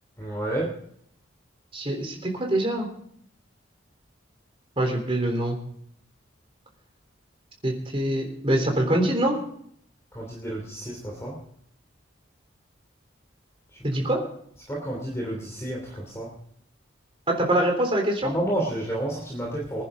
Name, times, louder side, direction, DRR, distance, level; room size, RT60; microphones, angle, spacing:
voice 1, 0.2-0.8 10.1-11.4 14.7-16.3 18.2-19.8, right 1 dB, 15° left, -2 dB, 2.9 m, -30 dB
voice 2, 1.7-2.9 4.8-5.6 7.6-9.3 13.8-14.2 17.3-18.3, right 1 dB, 25° right, 2 dB, 3.7 m, -24 dB
25.0 x 10.5 x 3.8 m, 0.66 s
head